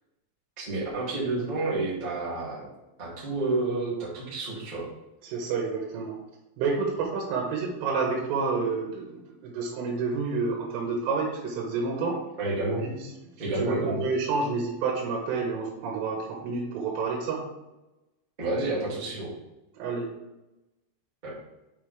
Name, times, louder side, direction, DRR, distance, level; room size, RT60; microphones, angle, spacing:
voice 1, 0.6-2.7 3.0-4.9 12.3-12.8 13.4-14.0 18.4-19.3 21.2-21.3, right 2 dB, 25° right, -7 dB, 0.9 m, -29 dB
voice 2, 5.2-6.2 6.6-12.2 12.8-13.0 13.6-17.4 19.8-20.1, right 4 dB, 85° right, -1 dB, 3.8 m, -29 dB
8.3 x 5.6 x 3.4 m, 0.98 s
omnidirectional pair, 5.6 m